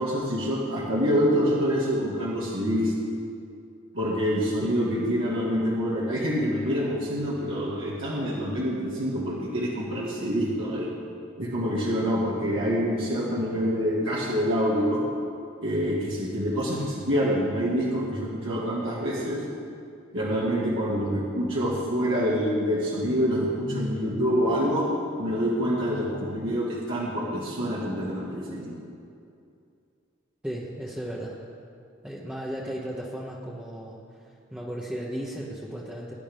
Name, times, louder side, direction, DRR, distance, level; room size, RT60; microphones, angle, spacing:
voice 1, 0.0-2.9 3.9-10.9 11.4-15.0 15.6-19.4 20.1-24.9 25.2-28.8, equal, 65° right, -7 dB, 2.1 m, -26 dB
voice 2, 30.4-31.4 32.0-36.1, equal, 5° right, -5 dB, 1.1 m, -35 dB
20.0 x 10.5 x 3.6 m, 2.5 s
head